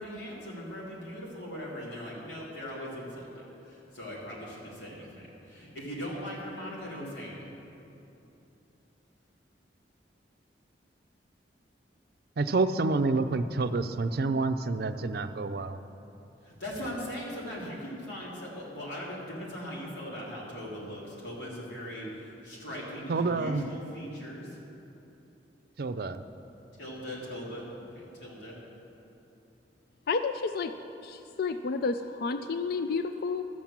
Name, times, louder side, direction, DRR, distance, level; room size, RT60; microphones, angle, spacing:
voice 1, 0.0-7.6 16.4-24.6 26.8-28.6, equal, 85° left, -5 dB, 3.3 m, -40 dB
voice 2, 12.4-15.8 23.1-23.6 25.8-26.2, right 3 dB, 60° right, 9 dB, 0.5 m, -28 dB
voice 3, 30.1-30.7 31.0-33.4, left 4 dB, 60° left, 9 dB, 0.4 m, -30 dB
12.5 x 7.5 x 7.3 m, 2.9 s
head